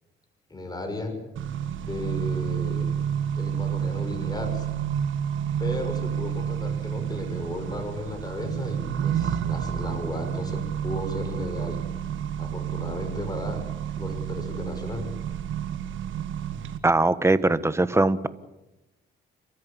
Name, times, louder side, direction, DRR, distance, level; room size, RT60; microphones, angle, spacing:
voice 1, 0.5-1.2 1.8-2.9 3.4-4.7 5.6-11.8 12.4-13.6 14.0-15.1, left 1 dB, 20° left, 5 dB, 5.8 m, -34 dB
Accelerating revving vroom, 1.4-16.8, right 9 dB, 75° right, 1.7 m, -30 dB
voice 2, 16.8-18.3, right 2 dB, 15° right, 14 dB, 1.3 m, -21 dB
30.0 x 13.5 x 8.8 m, 0.99 s
cardioid pair, 90°, 20 cm